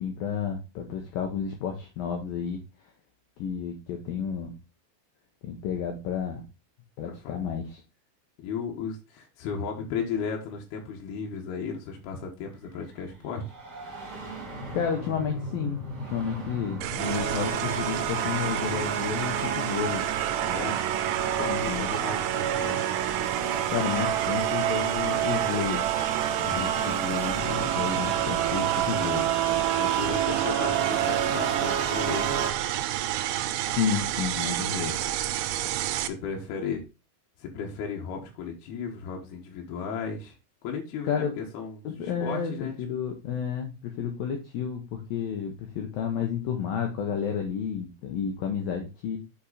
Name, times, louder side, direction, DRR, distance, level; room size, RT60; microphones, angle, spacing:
voice 1, 0.0-2.6 3.4-4.5 5.4-6.4 7.0-7.8 14.7-20.1 21.5-21.9 23.7-25.9 26.4-29.3 33.7-35.0 41.0-41.4 41.8-49.2, left 7 dB, 90° left, 3 dB, 2.0 m, -31 dB
voice 2, 7.0-7.4 8.4-13.4 20.4-20.8 21.4-22.8 26.4-26.7 29.8-32.6 35.9-36.8 37.4-40.3 40.6-42.8, left 6 dB, 70° left, 0 dB, 2.8 m, -35 dB
sound 1, 12.6-23.2 24.4-24.5 25.6-29.3, equal, 30° right, 2.1 m, -42 dB
sound 2, 16.8-36.1, right 13 dB, 85° right, 3.2 m, -31 dB
sound 3, 17.0-32.5, right 9 dB, 65° right, 2.9 m, -29 dB
7.1 x 5.7 x 4.0 m, 0.28 s
omnidirectional pair, 5.5 m